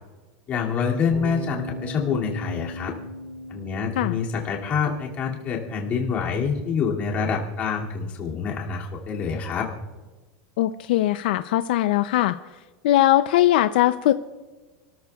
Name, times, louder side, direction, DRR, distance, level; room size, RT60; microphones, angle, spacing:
voice 1, 0.5-3.0 3.5-9.7, left 6 dB, 30° left, -2 dB, 2.5 m, -26 dB
sound 1, 1.1-7.4, left 2 dB, 25° right, 5.3 m, -38 dB
voice 2, 10.6-12.4 12.8-14.1, left 14 dB, 70° left, 11 dB, 0.5 m, -20 dB
29.5 x 13.5 x 2.4 m, 1.3 s
supercardioid pair, 170°, 5 cm